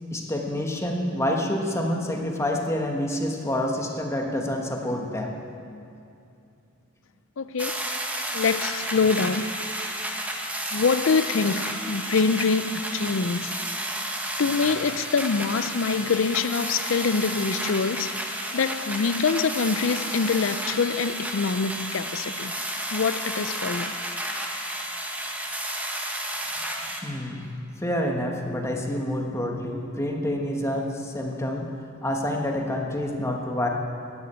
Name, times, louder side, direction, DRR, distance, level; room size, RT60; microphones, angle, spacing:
voice 1, 0.1-5.3 27.0-27.4 27.8-31.7 32.0-33.7, left 1 dB, 15° left, 1.3 m, -27 dB
voice 2, 7.4-7.9 8.3-9.6 10.7-13.6 14.4-22.5 22.9-23.9, left 5 dB, 70° left, 0.5 m, -25 dB
sound 1, 7.6-27.0, right 1 dB, 5° right, 1.1 m, -32 dB
13.0 x 9.9 x 8.8 m
head